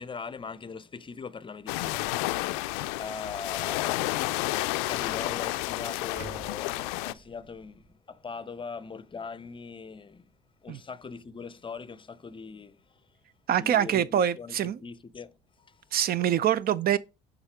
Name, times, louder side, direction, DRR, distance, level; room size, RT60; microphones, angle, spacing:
voice 1, 0.0-10.3 10.6-13.0 13.5-15.8, left 5 dB, 25° left, 0.6 m, -41 dB
sound 1, 1.7-7.1, left 19 dB, 80° left, 0.4 m, -31 dB
sound 2, 6.2-8.3 8.8-8.9, right 4 dB, 85° right, 2.3 m, -48 dB
voice 2, 13.5-14.8 15.9-17.0, right 10 dB, 50° right, 0.6 m, -25 dB
7.1 x 4.0 x 5.0 m
hypercardioid pair, 65°, 20 cm